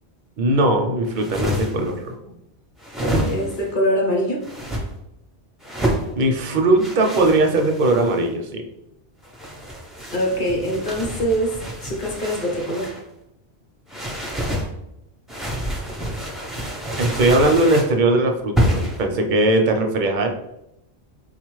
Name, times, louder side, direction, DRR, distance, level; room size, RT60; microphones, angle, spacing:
voice 1, 0.4-2.1 6.1-8.6 17.0-20.3, right 2 dB, 60° right, 4 dB, 0.5 m, -19 dB
sound 1, 1.0-1.9 2.8-3.7 4.4-4.8 5.6-6.1 6.8-8.2 9.2-13.0 13.9-14.7 15.3-17.9 18.6-19.0, equal, ahead, 0.3 m, -27 dB
voice 2, 3.2-4.5 10.1-12.9, equal, 50° left, 0 dB, 0.9 m, -23 dB
3.8 x 2.3 x 3.0 m, 0.84 s
omnidirectional pair, 1.1 m